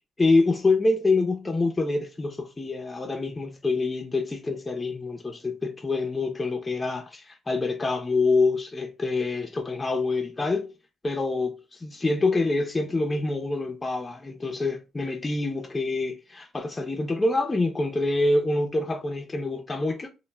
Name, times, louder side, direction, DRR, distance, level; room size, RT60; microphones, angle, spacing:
voice 1, 0.2-10.7 11.0-20.1, left 3 dB, 20° left, 0.5 m, -26 dB
2.1 x 2.1 x 3.2 m
cardioid pair, 90°, 0 cm